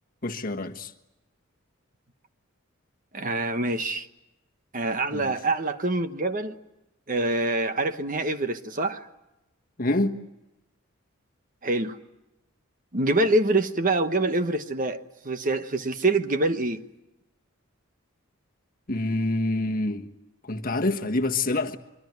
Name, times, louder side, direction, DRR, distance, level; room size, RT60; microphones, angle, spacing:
voice 1, 0.2-0.9 5.1-5.3 9.8-10.2 18.9-20.1 20.4-21.8, left 2 dB, 40° left, 1.5 m, -26 dB
voice 2, 3.1-4.1 4.7-6.6 7.1-9.1 11.6-12.0 12.9-15.0 15.2-16.8, right 2 dB, 40° right, 1.2 m, -25 dB
25.0 x 24.0 x 9.5 m
head